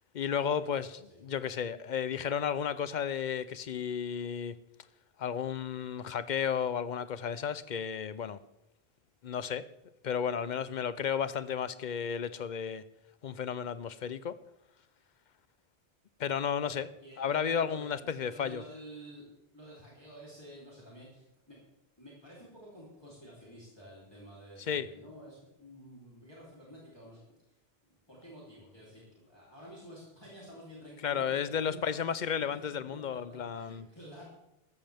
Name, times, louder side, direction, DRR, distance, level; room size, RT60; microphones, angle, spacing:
voice 1, 0.1-4.5 5.2-8.4 9.2-9.6 10.0-12.8 13.2-14.4 16.2-16.9 17.2-18.6 24.7-24.9 31.0-33.8, left 7 dB, 55° left, 0.7 m, -33 dB
voice 2, 0.7-1.2 16.6-19.3 19.5-21.6 22.0-27.6 27.9-32.6 32.9-34.2, equal, 25° left, 3.4 m, -51 dB
14.5 x 13.5 x 3.5 m
omnidirectional pair, 1.1 m